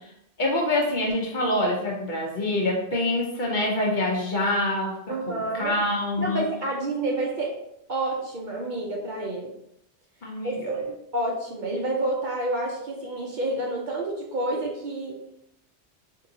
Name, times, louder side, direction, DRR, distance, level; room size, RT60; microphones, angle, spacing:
voice 1, 0.4-6.5 10.2-10.8, left 1 dB, 50° left, -1 dB, 0.8 m, -26 dB
voice 2, 5.1-5.7 6.2-7.5 7.9-9.5 10.4-10.8 11.1-15.2, right 2 dB, 55° right, -1 dB, 0.6 m, -29 dB
4.4 x 2.7 x 2.7 m, 0.78 s
omnidirectional pair, 1.2 m